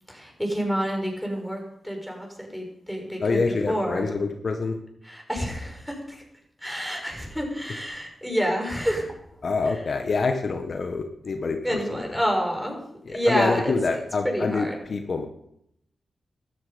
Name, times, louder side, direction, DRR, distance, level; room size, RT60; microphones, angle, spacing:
voice 1, 0.1-4.3 5.0-6.2 6.6-9.1 9.7-9.8 11.6-12.8 13.1-13.7 14.2-14.8, equal, ahead, 1 dB, 6.0 m, -28 dB
voice 2, 3.2-4.8 9.4-11.8 13.1-15.2, left 4 dB, 60° left, 5 dB, 1.5 m, -26 dB
15.0 x 13.0 x 5.3 m, 0.75 s
cardioid pair, 65°, 0 cm